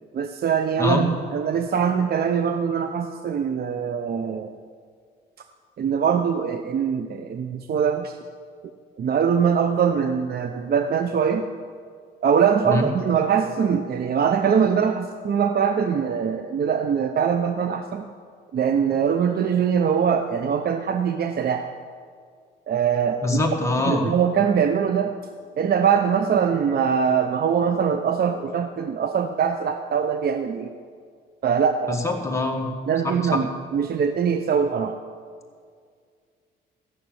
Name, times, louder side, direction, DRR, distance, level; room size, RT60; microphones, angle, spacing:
voice 1, 0.1-4.5 5.8-8.2 9.0-11.5 12.2-18.1 18.5-21.7 22.7-23.4 23.9-25.1 25.6-30.7 31.4-32.0 32.9-33.5 33.7-35.0, right 7 dB, 50° right, 7 dB, 0.7 m, -22 dB
voice 2, 23.2-24.1 31.9-32.7 33.0-33.4, left 2 dB, 15° left, 1 dB, 2.1 m, -24 dB
14.5 x 6.7 x 9.1 m, 2.1 s
cardioid pair, 90°, 20 cm